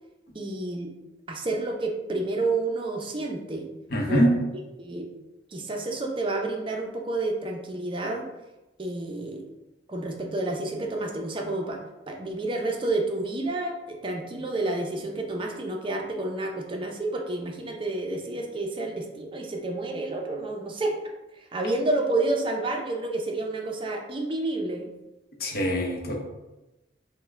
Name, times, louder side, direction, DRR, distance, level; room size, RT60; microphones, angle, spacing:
voice 1, 0.3-0.9 1.3-3.7 4.1-4.3 4.8-5.1 5.5-8.3 8.8-9.4 9.9-11.8 12.1-20.9 21.4-24.9, right 2 dB, 30° right, 1 dB, 0.5 m, -29 dB
voice 2, 3.9-4.3 25.4-26.2, equal, 60° left, 0 dB, 0.8 m, -23 dB
5.2 x 2.1 x 3.5 m, 1.0 s
head